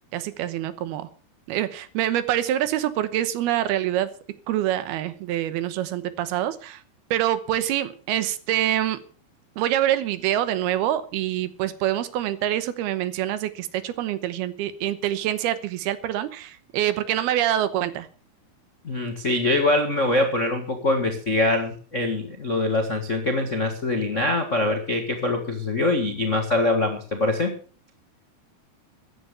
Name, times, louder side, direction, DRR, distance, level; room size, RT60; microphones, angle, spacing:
voice 1, 0.1-1.1 1.5-4.1 4.5-6.8 7.1-9.0 9.6-18.1, right 12 dB, 80° right, 13 dB, 2.9 m, -25 dB
voice 2, 18.8-27.5, left 2 dB, 55° left, 4 dB, 0.8 m, -23 dB
14.0 x 10.0 x 6.9 m, 0.42 s
omnidirectional pair, 4.6 m